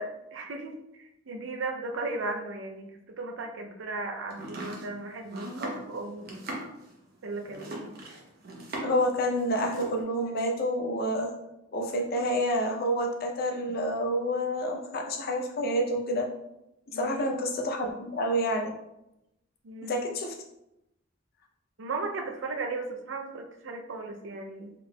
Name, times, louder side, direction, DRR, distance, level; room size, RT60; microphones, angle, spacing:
voice 1, 0.0-2.9 3.2-6.3 7.2-7.9 16.9-17.3 19.6-20.0 21.8-24.7, right 3 dB, 75° right, 3 dB, 0.5 m, -36 dB
Domestic sounds home sounds, 4.3-9.1 9.4-10.0, right 1 dB, 55° right, 0.8 m, -39 dB
voice 2, 8.8-11.3 11.7-16.3 16.9-18.7 19.8-20.4, equal, 50° left, 2 dB, 0.5 m, -28 dB
3.6 x 3.5 x 2.2 m, 0.88 s
head